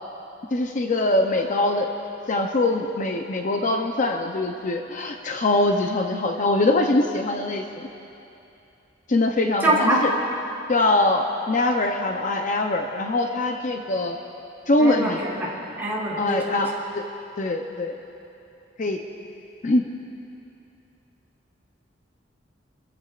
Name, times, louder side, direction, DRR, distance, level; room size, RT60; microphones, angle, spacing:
voice 1, 0.5-1.9 2.3-7.9 9.1-10.1 10.7-14.2 14.7-15.2 16.2-17.0 17.4-18.0 18.8-19.0 19.6-19.8, left 2 dB, 45° left, 3 dB, 0.6 m, -23 dB
voice 2, 9.6-10.0 14.8-15.5 15.8-16.6, right 1 dB, 10° right, -6 dB, 3.7 m, -24 dB
27.0 x 14.5 x 2.4 m, 2.8 s
head